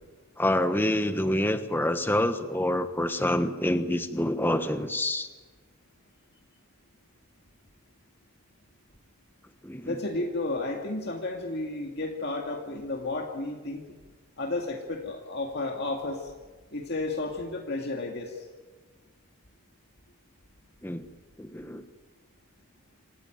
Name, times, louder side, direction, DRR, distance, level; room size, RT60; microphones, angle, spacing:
voice 1, 0.4-5.3 9.6-10.0 20.8-21.0 21.4-21.8, left 1 dB, 10° left, 8 dB, 1.2 m, -27 dB
voice 2, 9.8-13.8 14.4-16.3 16.7-18.4, left 2 dB, 50° left, 1 dB, 2.2 m, -32 dB
27.0 x 15.0 x 9.2 m, 1.3 s
head